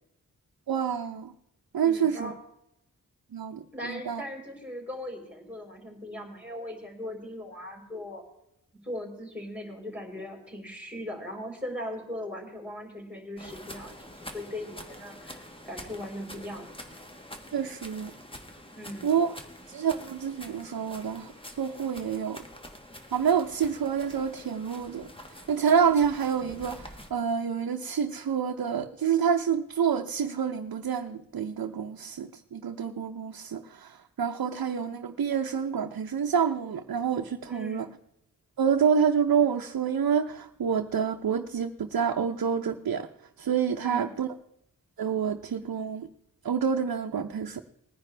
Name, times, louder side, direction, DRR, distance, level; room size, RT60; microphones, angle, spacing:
voice 1, 0.7-1.3 1.7-2.3 3.3-4.2 17.5-18.1 19.0-19.4 19.7-21.3 21.6-22.4 23.1-25.1 25.5-37.9 38.6-43.1 43.4-44.3 45.0-46.1 46.4-47.6, right 7 dB, 80° right, 0.8 m, -27 dB
voice 2, 1.8-2.4 3.7-8.2 8.8-16.7 18.8-19.1 37.5-37.9 43.8-44.1, left 1 dB, 5° right, 4.0 m, -39 dB
sound 1, 13.4-27.1, left 1 dB, 15° left, 1.4 m, -46 dB
20.0 x 10.0 x 3.3 m
wide cardioid pair, 115°, 35 cm